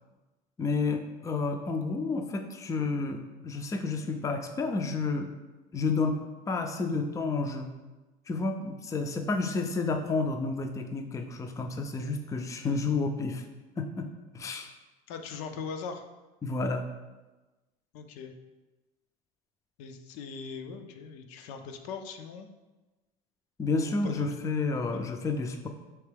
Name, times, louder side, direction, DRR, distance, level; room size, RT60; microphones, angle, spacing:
voice 1, 0.6-5.3 5.7-6.2 6.5-7.7 8.3-13.4 13.8-14.7 16.4-16.9 23.6-25.7, left 3 dB, 15° left, 5 dB, 0.4 m, -30 dB
voice 2, 15.1-16.0 17.9-18.3 19.8-22.5 23.8-24.5 24.9-25.0, left 5 dB, 80° left, 6 dB, 0.5 m, -40 dB
4.5 x 2.9 x 3.4 m, 1.2 s
supercardioid pair, 100°, 19 cm